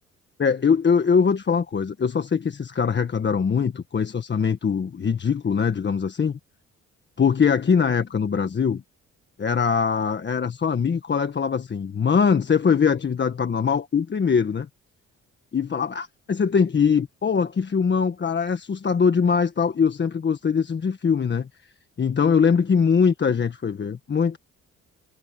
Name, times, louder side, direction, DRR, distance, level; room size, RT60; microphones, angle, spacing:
voice 1, 0.4-6.4 7.2-8.8 9.4-14.7 15.5-21.5 22.0-24.4, left 6 dB, 35° left, 1.5 m, -22 dB
cardioid pair, 90°, 30 cm